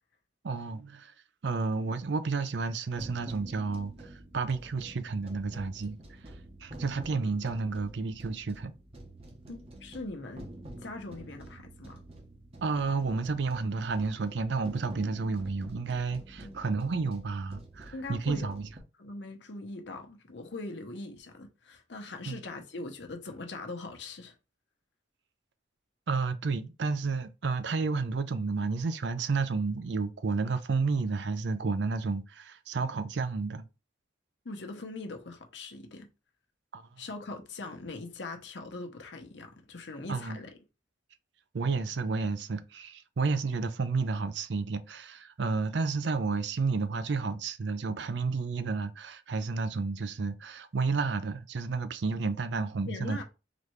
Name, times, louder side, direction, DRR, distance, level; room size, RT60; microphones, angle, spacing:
voice 1, 0.4-1.1 1.4-6.2 6.6-8.7 12.6-18.7 22.3-22.4 26.1-33.7 36.7-37.0 40.1-40.4 41.5-53.2, right 4 dB, 70° right, 0.5 m, -31 dB
sound 1, 3.0-18.8, right 1 dB, 30° right, 0.8 m, -48 dB
voice 2, 9.5-10.5 10.8-12.0 16.4-16.7 17.9-18.5 19.0-24.3 34.4-36.1 37.0-40.5 52.9-53.2, left 2 dB, 70° left, 0.8 m, -41 dB
4.0 x 3.3 x 3.1 m
head